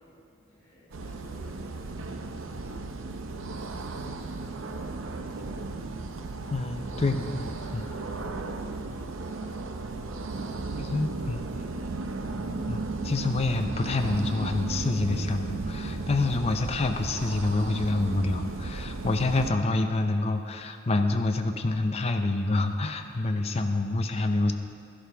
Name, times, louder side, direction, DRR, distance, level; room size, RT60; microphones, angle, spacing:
voice 1, 0.0-2.7 3.1-4.7 5.0-5.6 6.7-6.9 7.5-9.6 10.3-11.9, equal, 5° left, -14 dB, 3.3 m, -54 dB
sound 1, 0.9-19.5, right 3 dB, 90° right, 0.7 m, -35 dB
voice 2, 6.5-7.8 10.8-11.4 12.7-24.5, left 2 dB, 30° left, 5 dB, 0.6 m, -27 dB
12.5 x 11.5 x 3.5 m, 2.3 s
head